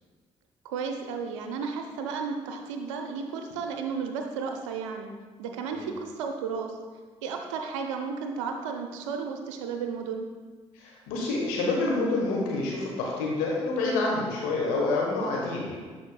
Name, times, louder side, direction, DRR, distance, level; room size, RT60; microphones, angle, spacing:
voice 1, 0.6-5.1 5.4-6.8 7.2-10.3, right 5 dB, 75° right, 4 dB, 0.5 m, -33 dB
voice 2, 10.7-15.8, left 3 dB, 65° left, -2 dB, 1.2 m, -28 dB
11.0 x 4.1 x 2.3 m, 1.4 s
figure-of-eight pair, 40°, 16 cm